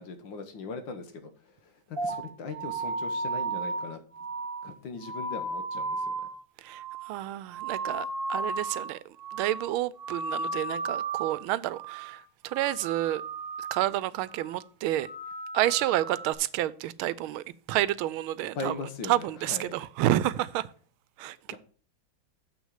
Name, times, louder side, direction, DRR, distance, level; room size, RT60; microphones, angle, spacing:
voice 1, 0.0-4.0 4.6-6.1 18.6-19.8 21.5-21.6, left 4 dB, 65° left, 1.9 m, -39 dB
sound 1, 2.0-8.9 9.2-9.7 10.0-11.5 11.7-12.2 12.5-13.9 14.3-14.6 15.0-16.3, right 3 dB, 40° right, 0.8 m, -35 dB
voice 2, 6.6-9.0 9.3-13.2 13.6-15.1 15.5-18.7 19.1-20.7 21.2-21.4, right 14 dB, 85° right, 1.4 m, -29 dB
7.3 x 6.2 x 6.4 m
omnidirectional pair, 2.2 m